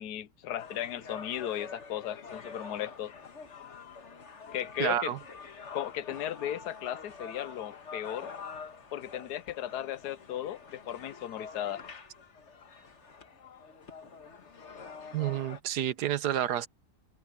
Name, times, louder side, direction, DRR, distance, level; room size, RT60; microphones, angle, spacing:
voice 1, 0.0-3.1 4.5-5.1 5.7-8.3 8.9-11.8, left 11 dB, 85° left, 1.3 m, -36 dB
sound 1, 0.6-15.6, left 5 dB, 45° left, 1.7 m, -46 dB
voice 2, 4.8-5.2 15.1-16.7, right 11 dB, 80° right, 1.4 m, -29 dB
omnidirectional pair, 1.7 m